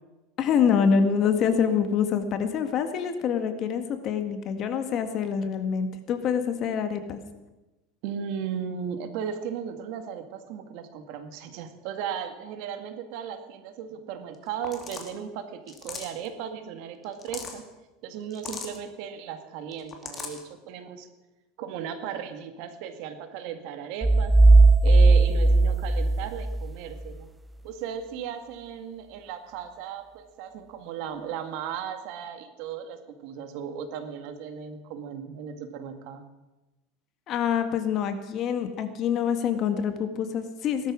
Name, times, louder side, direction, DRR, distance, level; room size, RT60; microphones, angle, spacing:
voice 1, 0.4-7.2 37.3-40.9, left 7 dB, 40° left, 8 dB, 1.8 m, -26 dB
voice 2, 8.0-17.6 18.0-21.1 21.6-24.4 24.8-27.3 27.6-36.3, right 8 dB, 60° right, 8 dB, 2.1 m, -36 dB
sound 1, 14.3-14.4 14.6-15.1 15.7-16.3 17.0-17.6 18.3-18.8 19.7-20.4, left 5 dB, 25° left, 2.4 m, -38 dB
sound 2, 24.0-26.7, right 3 dB, 10° right, 0.6 m, -17 dB
18.0 x 12.5 x 6.3 m, 1.1 s
supercardioid pair, 150°, 0 cm